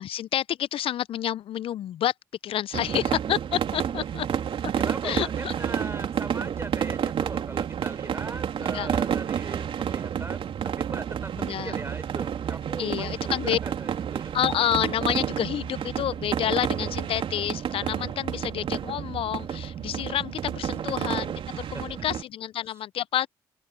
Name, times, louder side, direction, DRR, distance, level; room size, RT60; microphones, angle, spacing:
voice 1, 0.0-2.1 2.4-4.3 5.0-5.5 8.7-8.9 11.4-11.7 12.8-13.6 14.3-23.3, left 11 dB, 65° left, 0.6 m, -29 dB
sound 1, 2.7-22.2, right 8 dB, 60° right, 3.2 m, -30 dB
voice 2, 4.8-14.3 20.9-21.0 21.7-21.8 22.7-22.8, right 2 dB, 25° right, 5.5 m, -39 dB
open air
hypercardioid pair, 40°, 10 cm